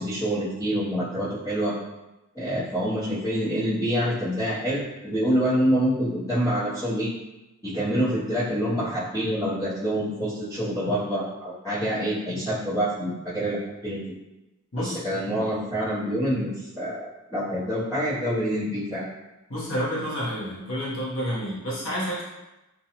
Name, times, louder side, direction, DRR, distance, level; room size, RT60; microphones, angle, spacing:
voice 1, 0.0-1.8 2.3-7.1 7.6-14.0 14.8-19.1, equal, 15° left, -15 dB, 0.7 m, -26 dB
voice 2, 19.5-22.2, equal, 60° left, -7 dB, 0.9 m, -29 dB
2.5 x 2.2 x 2.8 m, 1.0 s
head